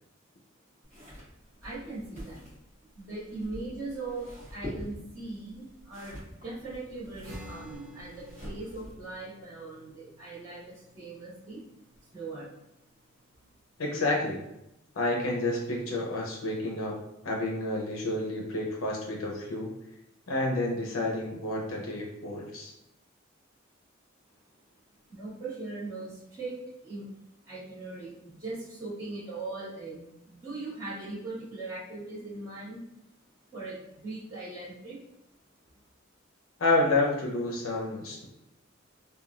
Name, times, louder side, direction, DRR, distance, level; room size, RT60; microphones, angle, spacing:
sound 1, 0.8-9.1, equal, 30° right, 1.4 m, -45 dB
voice 1, 1.6-2.4 2.9-11.6 12.1-12.5 25.1-27.1 27.4-32.8 33.5-35.0, right 2 dB, 15° right, -15 dB, 1.3 m, -40 dB
sound 2, 7.2-13.9, equal, 60° right, 1.1 m, -53 dB
voice 2, 13.8-14.4 14.9-17.0 17.2-19.7 20.3-22.7 36.6-38.3, left 2 dB, 90° left, -2 dB, 0.7 m, -29 dB
3.0 x 2.3 x 2.4 m, 0.84 s
head